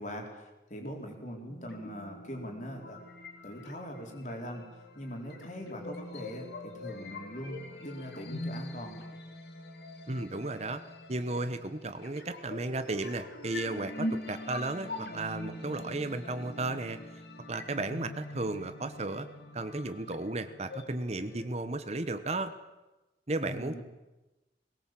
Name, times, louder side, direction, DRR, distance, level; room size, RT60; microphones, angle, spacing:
voice 1, 0.0-3.0 3.4-9.0 23.4-23.8, equal, 45° left, 2 dB, 4.3 m, -41 dB
sound 1, 1.5-21.5, left 1 dB, 65° left, 3.2 m, -43 dB
voice 2, 10.1-10.8 11.1-17.2 17.5-19.3 19.5-22.5 23.3-23.8, right 2 dB, 40° right, 11 dB, 1.1 m, -34 dB
21.0 x 19.0 x 7.6 m, 1.1 s
head